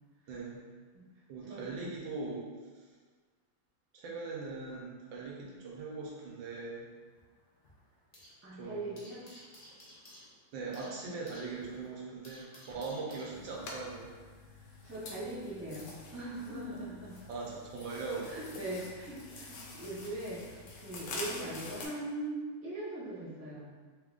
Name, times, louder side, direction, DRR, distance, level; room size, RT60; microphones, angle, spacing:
voice 1, 0.3-0.6 1.3-2.4 3.9-6.9 8.6-8.9 9.3-9.4 10.5-14.1 17.3-18.3, right 3 dB, 75° right, -4 dB, 1.5 m, -40 dB
sound 1, 6.4-8.5 8.7-13.8, left 1 dB, 65° left, 0.4 m, -56 dB
voice 2, 8.4-9.3 10.7-10.9 14.8-17.2 18.2-23.7, right 1 dB, 20° right, -9 dB, 0.3 m, -41 dB
sound 2, 13.3-21.9, left 2 dB, 85° left, 1.5 m, -46 dB
3.8 x 3.6 x 2.5 m, 1.5 s
omnidirectional pair, 2.1 m